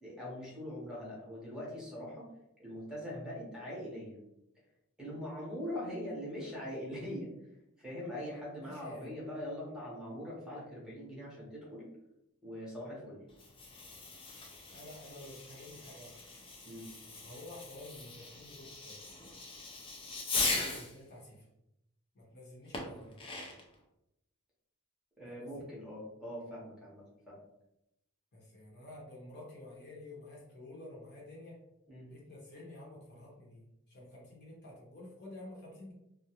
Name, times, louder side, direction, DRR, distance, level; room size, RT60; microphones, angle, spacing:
voice 1, 0.0-2.3 2.6-4.2 5.0-7.3 7.8-11.9 12.4-13.2 16.6-16.9 22.8-23.0 25.2-27.4 31.9-32.1, equal, 5° right, -6 dB, 0.7 m, -42 dB
voice 2, 8.6-9.2 14.7-16.1 17.0-19.0 20.5-21.4 22.1-23.2 25.3-25.6 28.3-31.6 32.1-35.9, left 1 dB, 50° left, -4 dB, 0.8 m, -50 dB
Fireworks, 13.3-21.0 22.7-23.7, left 3 dB, 25° left, 0.4 m, -39 dB
2.3 x 2.1 x 2.8 m, 0.84 s
head